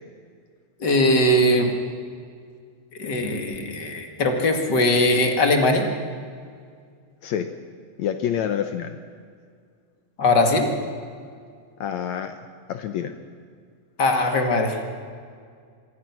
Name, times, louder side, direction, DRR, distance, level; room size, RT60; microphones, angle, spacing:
voice 1, 0.8-1.7 3.0-5.9 10.2-10.7 14.0-14.9, left 1 dB, 35° left, 3 dB, 2.2 m, -20 dB
voice 2, 8.0-9.0 11.8-12.4 12.7-13.1, left 9 dB, 85° left, 8 dB, 1.6 m, -27 dB
26.0 x 22.0 x 6.1 m, 2.1 s
omnidirectional pair, 4.4 m